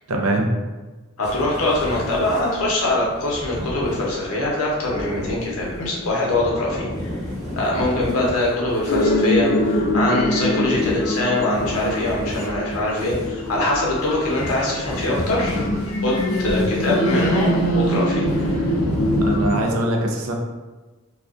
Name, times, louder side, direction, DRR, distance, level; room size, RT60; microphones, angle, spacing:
voice 1, 0.1-0.5 19.2-20.3, right 1 dB, 80° right, 1 dB, 0.4 m, -22 dB
voice 2, 1.2-7.1 7.6-15.6 16.0-18.6, left 2 dB, 90° left, -4 dB, 0.7 m, -23 dB
sound 1, 1.2-19.6, left 1 dB, ahead, 0.8 m, -31 dB
sound 2, 8.9-19.6, equal, 60° left, 0.3 m, -23 dB
2.4 x 2.1 x 2.4 m, 1.2 s
head